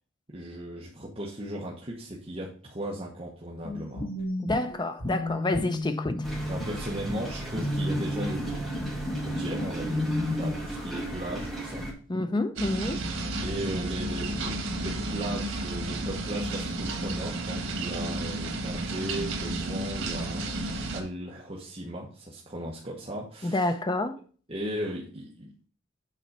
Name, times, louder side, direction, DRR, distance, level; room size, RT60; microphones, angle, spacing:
voice 1, 0.3-4.1 6.5-8.7 9.2-10.0 10.3-11.8 13.4-20.7 20.9-23.7 24.5-25.5, right 1 dB, 30° right, 1.2 m, -36 dB
sound 1, 3.6-10.5, left 1 dB, 50° left, 2.0 m, -32 dB
voice 2, 4.4-6.2 12.1-13.1 23.4-24.2, left 2 dB, 20° left, 0.6 m, -28 dB
sound 2, 6.2-11.9, right 1 dB, ahead, 2.0 m, -35 dB
sound 3, 12.6-21.0, right 2 dB, 90° right, 1.6 m, -32 dB
7.5 x 3.9 x 5.5 m
head